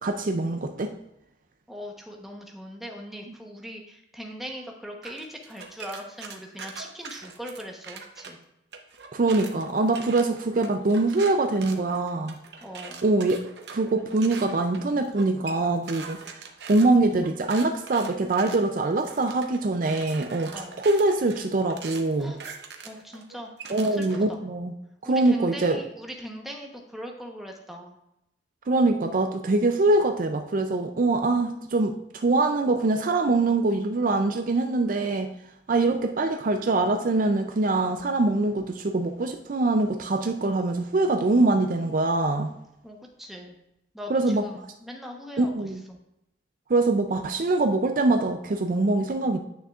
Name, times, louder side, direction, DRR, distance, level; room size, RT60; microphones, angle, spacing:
voice 1, 0.0-0.9 9.1-12.3 13.0-13.4 13.7-16.2 16.7-22.3 23.7-24.7 25.0-25.8 28.7-35.3 35.7-42.5 44.1-44.4 45.4-45.8 46.7-49.4, right 2 dB, 45° right, 6 dB, 0.4 m, -23 dB
voice 2, 1.7-8.4 12.6-13.0 20.5-20.8 22.2-22.4 22.8-24.4 25.0-27.9 42.8-43.6 43.9-46.0, equal, ahead, 1 dB, 0.9 m, -40 dB
sound 1, 5.0-8.3 8.7-24.3, right 5 dB, 65° right, 0.8 m, -42 dB
9.3 x 6.3 x 2.4 m, 0.85 s
head